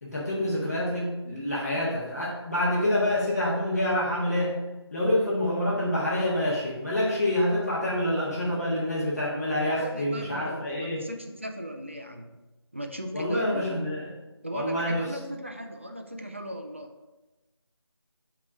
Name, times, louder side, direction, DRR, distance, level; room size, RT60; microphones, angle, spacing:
voice 1, 0.0-4.5 4.9-11.0 13.1-14.1 14.5-15.0, left 1 dB, 35° left, -7 dB, 1.5 m, -27 dB
voice 2, 9.6-12.4 12.7-13.7 14.4-16.9, equal, 30° right, 4 dB, 0.4 m, -38 dB
7.7 x 2.9 x 4.8 m, 1.1 s
figure-of-eight pair, 175°, 14 cm